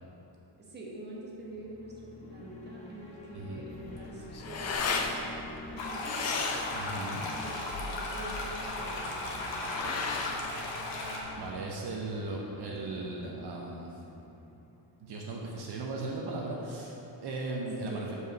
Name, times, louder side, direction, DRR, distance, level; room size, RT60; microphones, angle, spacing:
voice 1, 0.6-6.2 7.3-10.2 17.9-18.1, right 1 dB, 25° right, -4 dB, 1.2 m, -45 dB
sound 1, 1.1-15.3, left 2 dB, 15° left, 0.8 m, -50 dB
sound 2, 3.7-11.6, left 4 dB, 35° left, 0.5 m, -36 dB
sound 3, 5.8-11.2, left 2 dB, 80° left, 1.3 m, -36 dB
voice 2, 6.7-7.3 11.4-13.9 15.0-18.1, right 2 dB, 60° right, -2 dB, 0.8 m, -37 dB
5.5 x 4.8 x 6.1 m, 3.0 s
cardioid pair, 140°, 44 cm